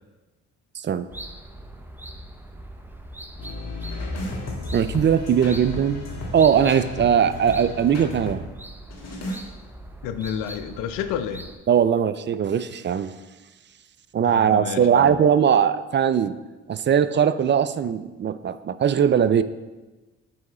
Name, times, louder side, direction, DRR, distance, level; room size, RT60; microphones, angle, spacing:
voice 1, 0.8-1.1 4.7-6.0 6.3-8.4 11.7-13.1 14.1-16.3 16.7-19.4, right 8 dB, 35° right, 14 dB, 0.4 m, -20 dB
sound 1, 1.1-11.6, right 1 dB, 5° right, 0.8 m, -41 dB
sound 2, 3.4-8.4 8.9-9.4, left 2 dB, 50° left, 1.6 m, -34 dB
voice 2, 10.0-11.4 14.2-15.2, left 8 dB, 80° left, 10 dB, 0.5 m, -30 dB
6.9 x 4.7 x 4.2 m, 1.2 s
hypercardioid pair, 50°, 33 cm